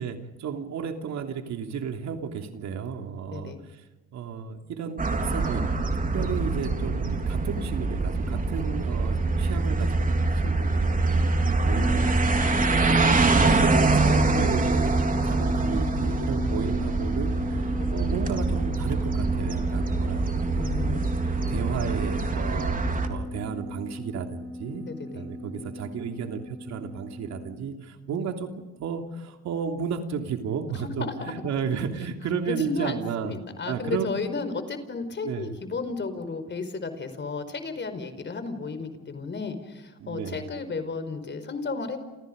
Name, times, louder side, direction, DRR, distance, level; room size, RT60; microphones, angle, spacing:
voice 1, 0.0-3.8 4.1-5.7 6.1-12.2 13.2-15.0 15.2-20.9 21.2-22.8 23.1-24.9 25.1-33.4 33.7-34.2 35.2-35.5 40.0-40.4, right 7 dB, 65° right, 5 dB, 3.1 m, -33 dB
voice 2, 3.3-3.6 11.7-11.9 12.6-12.8 17.9-18.0 20.5-21.4 24.7-25.2 25.6-25.7 28.1-28.2 30.7-31.3 32.4-42.0, left 4 dB, 40° left, 9 dB, 4.8 m, -33 dB
sound 1, 5.0-23.1, right 3 dB, 30° right, 3.7 m, -25 dB
sound 2, 11.7-27.5, left 1 dB, 5° left, 4.4 m, -34 dB
29.0 x 29.0 x 5.3 m, 1.1 s
cardioid pair, 95°, 29 cm